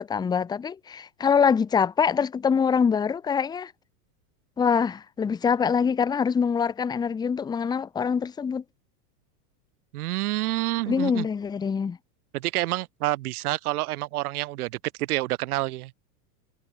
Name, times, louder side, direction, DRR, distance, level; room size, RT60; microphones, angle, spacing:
voice 1, 0.0-3.7 4.6-8.6 10.9-12.0, left 6 dB, 10° left, 0.9 m, -24 dB
voice 2, 9.9-11.3 12.3-15.9, right 17 dB, 65° right, 2.6 m, -28 dB
supercardioid pair, 155°, 48 cm